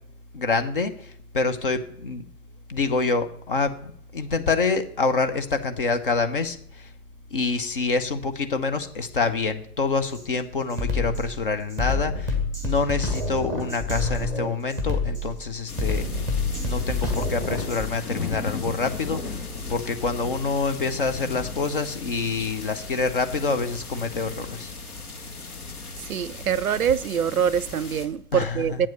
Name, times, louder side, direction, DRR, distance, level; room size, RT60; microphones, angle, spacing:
voice 1, 0.3-2.2 2.7-6.9 7.3-12.4 12.6-16.1 16.5-24.7 28.3-28.8, left 4 dB, 35° left, 0.6 m, -26 dB
Drum kit, 10.0-10.2 10.7-17.9, left 3 dB, 5° left, 0.9 m, -28 dB
sound 1, 15.7-28.1, left 4 dB, 65° left, 2.0 m, -35 dB
voice 2, 26.1-28.9, right 8 dB, 60° right, 0.5 m, -24 dB
8.4 x 7.5 x 5.3 m
figure-of-eight pair, 125°, 48 cm